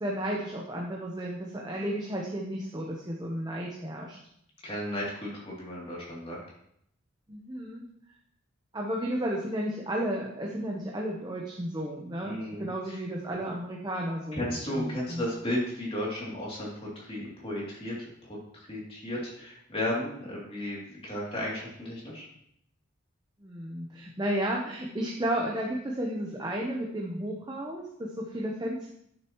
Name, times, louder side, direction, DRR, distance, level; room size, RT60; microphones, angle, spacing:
voice 1, 0.0-4.2 7.3-7.8 8.7-15.2 23.4-28.9, right 1 dB, 20° right, -1 dB, 0.9 m, -33 dB
voice 2, 4.6-6.4 12.2-13.0 14.3-18.4 18.7-22.3, left 1 dB, 30° left, -5 dB, 2.9 m, -34 dB
11.0 x 6.7 x 3.1 m, 0.72 s
head